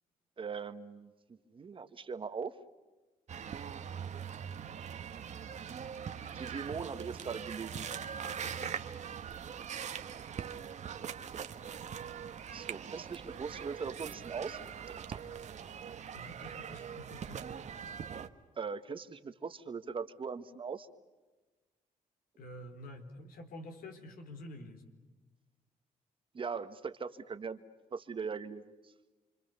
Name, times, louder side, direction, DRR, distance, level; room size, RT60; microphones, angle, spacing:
voice 1, 0.4-1.1 1.5-2.5 6.4-7.8 12.5-15.2 15.9-16.0 18.6-20.9 26.3-27.6 27.9-28.6, right 5 dB, 35° right, 10 dB, 1.5 m, -40 dB
sound 1, 3.3-18.3, right 7 dB, 55° right, 1.4 m, -42 dB
voice 2, 8.4-8.8 16.1-17.5 22.4-24.9, left 1 dB, 85° left, 6 dB, 4.3 m, -48 dB
29.0 x 25.0 x 6.9 m, 1.2 s
cardioid pair, 120°, 15 cm